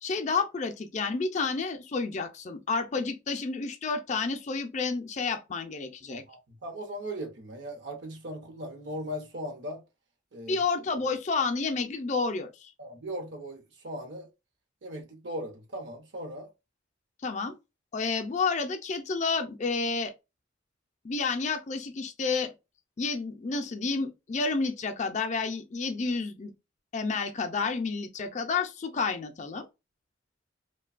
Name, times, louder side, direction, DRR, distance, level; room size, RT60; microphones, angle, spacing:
voice 1, 0.0-6.2 10.5-12.7 17.2-17.6 17.9-20.1 21.0-22.5 23.0-26.5 26.9-29.7, left 4 dB, 35° left, 0.4 m, -30 dB
voice 2, 6.1-9.8 10.3-10.6 12.8-14.3 14.8-16.5, equal, 65° right, 0.8 m, -38 dB
2.7 x 2.2 x 2.4 m
head